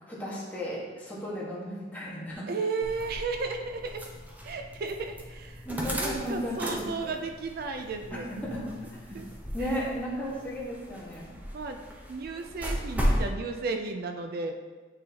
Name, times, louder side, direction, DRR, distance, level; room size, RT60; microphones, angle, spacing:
voice 1, 0.0-2.5 5.6-7.1 8.1-8.6 9.5-11.2, equal, 10° left, -6 dB, 1.4 m, -35 dB
voice 2, 2.5-4.0 4.4-5.6 5.9-8.3 9.1-9.3 9.6-9.8 11.5-11.8 12.1-14.5, right 4 dB, 55° right, 5 dB, 0.4 m, -34 dB
sound 1, 2.8-13.3, equal, 10° right, 0.8 m, -35 dB
9.3 x 3.9 x 2.9 m, 1.4 s
head